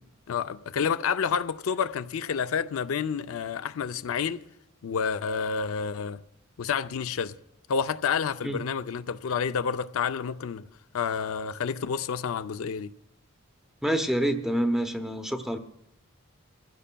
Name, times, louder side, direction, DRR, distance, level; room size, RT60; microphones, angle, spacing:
voice 1, 0.3-4.4 4.8-6.2 6.6-7.3 7.7-10.6 10.9-12.9, left 6 dB, 75° left, 0.4 m, -29 dB
voice 2, 13.8-15.6, right 1 dB, ahead, 0.6 m, -27 dB
23.5 x 15.5 x 2.2 m
head